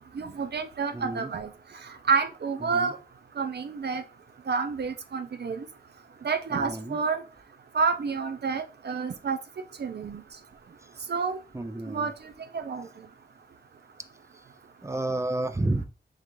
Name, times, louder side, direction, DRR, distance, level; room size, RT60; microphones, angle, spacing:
voice 1, 0.1-1.5 2.1-3.0 3.4-4.0 4.5-5.7 6.2-7.2 7.7-9.4 9.8-10.2 11.1-11.4 11.9-12.1 12.5-12.9, right 5 dB, 65° right, 9 dB, 0.5 m, -29 dB
voice 2, 0.9-1.3 2.6-2.9 6.5-7.0 11.5-12.1 14.3-14.4 14.8-15.8, right 2 dB, 15° right, 10 dB, 0.4 m, -31 dB
3.7 x 3.2 x 3.1 m, 0.34 s
wide cardioid pair, 65°, 19 cm